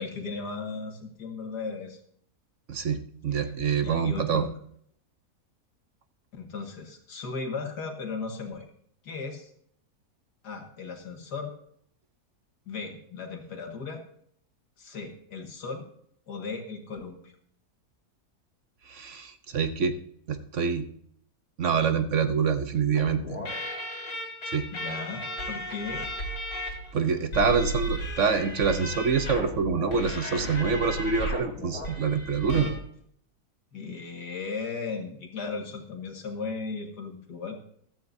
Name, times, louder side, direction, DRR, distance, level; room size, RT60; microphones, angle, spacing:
voice 1, 0.0-2.0 3.8-4.6 6.3-8.7 9.0-9.5 10.4-11.5 12.7-14.0 14.8-15.9 16.3-17.3 24.7-26.1 33.7-37.6, left 4 dB, 85° left, 3 dB, 2.4 m, -36 dB
voice 2, 2.7-4.5 18.9-19.9 20.3-20.8 21.6-23.4 24.5-24.7 26.9-32.7, right 6 dB, 55° right, 8 dB, 1.1 m, -26 dB
sound 1, 22.9-32.7, equal, 65° left, 3.8 m, -34 dB
15.0 x 13.0 x 2.7 m, 0.65 s
omnidirectional pair, 1.7 m